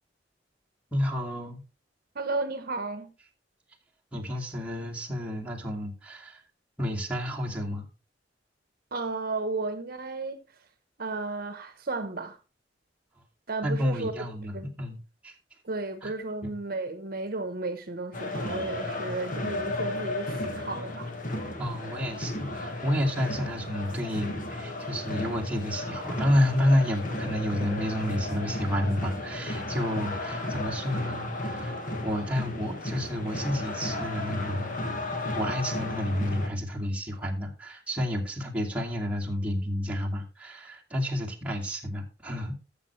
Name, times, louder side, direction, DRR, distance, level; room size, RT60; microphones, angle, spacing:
voice 1, 0.9-1.6 4.1-6.4 6.8-7.9 13.6-15.0 15.2-15.3 16.0-16.1 16.4-16.5 21.6-31.7 32.0-34.7 35.4-42.5, left 1 dB, 10° right, 2.5 m, -30 dB
voice 2, 2.1-3.1 8.9-10.4 11.0-12.4 13.5-14.1 14.5-14.7 15.6-21.1 21.4-21.5, right 3 dB, 55° right, 1.0 m, -33 dB
sound 1, 18.1-36.5, left 2 dB, 50° left, 1.7 m, -34 dB
13.5 x 7.1 x 3.2 m
head